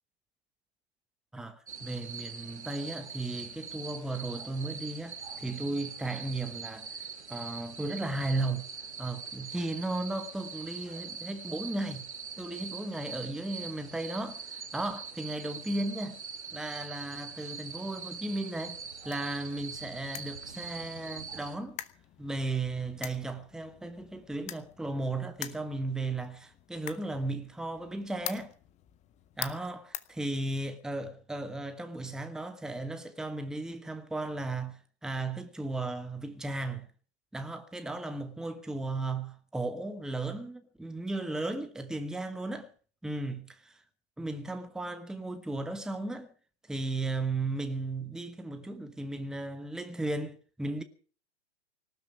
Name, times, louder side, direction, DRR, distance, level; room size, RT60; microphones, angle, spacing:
voice 1, 1.3-6.9 7.3-8.6 9.0-12.0 12.4-16.2 16.5-18.8 19.0-21.8 22.2-28.5 29.4-36.9 37.3-42.7 43.0-43.8 44.2-46.3 46.7-50.8, right 2 dB, ahead, 1.1 m, -35 dB
sound 1, 1.7-21.6, right 5 dB, 80° right, 2.1 m, -43 dB
sound 2, 18.5-30.8, left 12 dB, 20° left, 0.9 m, -46 dB
19.0 x 12.0 x 6.0 m
figure-of-eight pair, 105°, 33 cm